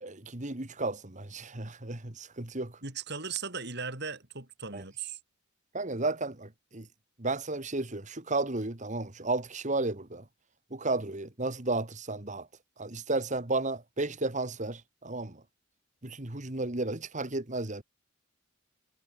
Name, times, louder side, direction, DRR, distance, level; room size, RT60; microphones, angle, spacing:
voice 1, 0.0-2.7 4.7-4.8 5.7-6.9 7.2-10.2 10.7-12.5 12.8-15.4 16.0-17.8, right 2 dB, 35° right, 2.0 m, -33 dB
voice 2, 2.8-5.2, right 5 dB, 55° right, 6.1 m, -37 dB
head